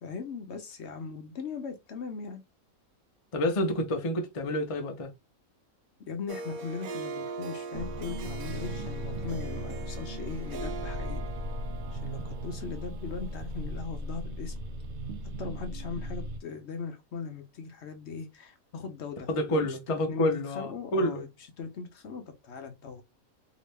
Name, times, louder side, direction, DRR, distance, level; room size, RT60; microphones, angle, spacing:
voice 1, 0.0-2.4 6.1-11.2 11.9-14.5 15.4-21.3 21.6-23.0, left 5 dB, 60° left, 0.9 m, -39 dB
voice 2, 3.3-5.1 19.3-21.2, left 1 dB, 45° left, 0.4 m, -28 dB
Harp, 6.3-13.8, right 4 dB, 90° right, 1.0 m, -41 dB
sound 1, 7.7-16.4, equal, 65° right, 0.8 m, -37 dB
2.9 x 2.7 x 3.2 m
omnidirectional pair, 1.4 m